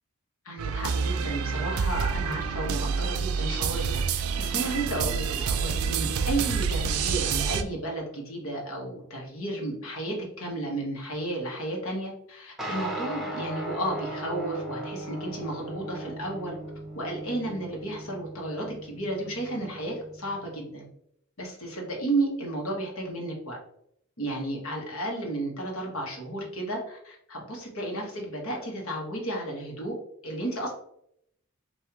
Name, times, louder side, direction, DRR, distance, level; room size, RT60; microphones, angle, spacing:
voice 1, 0.4-16.6 16.9-20.9 21.4-23.6 24.2-29.9 30.2-30.7, right 1 dB, 75° left, -1 dB, 1.3 m, -33 dB
sound 1, 0.6-7.6, right 6 dB, 85° right, 0.4 m, -28 dB
sound 2, 12.6-20.4, right 1 dB, ahead, 0.7 m, -37 dB
5.5 x 2.6 x 2.9 m, 0.72 s
head